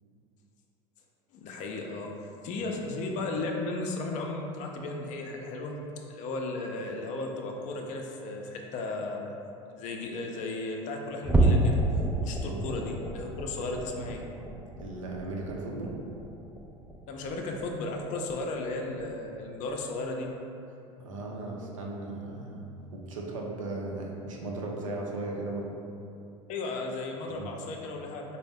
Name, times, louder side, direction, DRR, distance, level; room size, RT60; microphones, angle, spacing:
voice 1, 1.3-9.3 9.7-11.8 12.2-14.2 17.1-20.3 26.5-28.4, left 2 dB, 50° left, 1 dB, 0.5 m, -35 dB
sound 1, 11.2-17.9 18.3-18.6 19.0-19.1 19.7-19.8, right 1 dB, 5° right, 0.4 m, -30 dB
voice 2, 14.8-16.0 21.0-22.6 22.9-25.7 27.3-27.5, right 2 dB, 85° right, -1 dB, 0.6 m, -36 dB
3.9 x 2.2 x 3.5 m, 2.6 s
hypercardioid pair, 80°, 16 cm